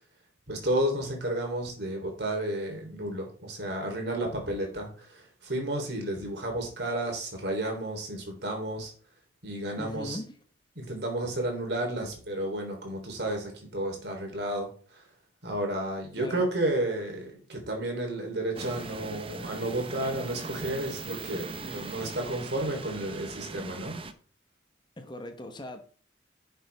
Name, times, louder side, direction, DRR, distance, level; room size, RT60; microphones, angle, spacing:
voice 1, 0.5-8.9 9.4-10.2 10.7-15.0 15.4-24.0, right 1 dB, 60° right, 2 dB, 3.4 m, -32 dB
voice 2, 9.7-10.3 16.1-16.5 25.0-25.8, left 1 dB, 25° left, 7 dB, 1.0 m, -39 dB
sound 1, 18.5-24.1, right 3 dB, 30° right, 0.7 m, -39 dB
10.5 x 6.8 x 3.4 m, 0.43 s
head